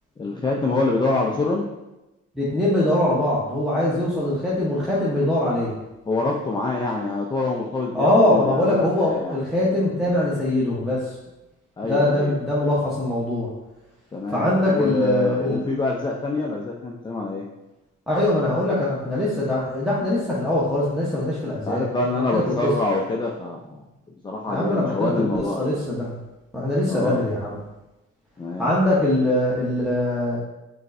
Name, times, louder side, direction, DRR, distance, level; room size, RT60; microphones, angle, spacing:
voice 1, 0.2-1.7 6.1-9.4 11.8-12.3 14.1-17.5 21.5-23.8 24.2-25.8 26.9-27.2 28.4-28.7, left 3 dB, 15° left, -1 dB, 0.4 m, -26 dB
voice 2, 2.3-5.7 7.9-11.1 11.8-13.5 14.3-15.6 18.1-22.7 24.5-26.2 26.5-27.6 28.6-30.4, left 1 dB, ahead, -7 dB, 0.9 m, -22 dB
5.1 x 3.2 x 2.6 m, 1.0 s
cardioid pair, 90°, 30 cm